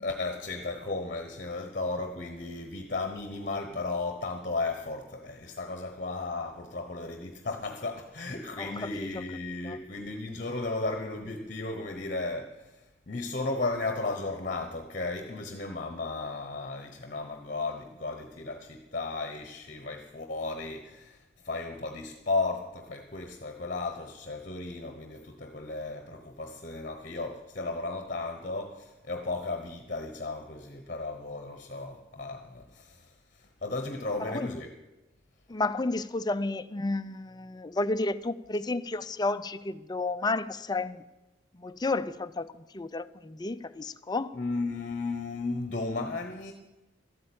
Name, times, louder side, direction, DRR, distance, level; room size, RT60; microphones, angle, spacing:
voice 1, 0.0-34.7 44.3-46.5, left 3 dB, 40° left, 1.1 m, -35 dB
voice 2, 8.6-9.1 9.6-9.8 34.2-34.5 35.5-41.0 41.5-44.3, left 2 dB, 20° left, 0.5 m, -32 dB
13.0 x 8.7 x 8.7 m
head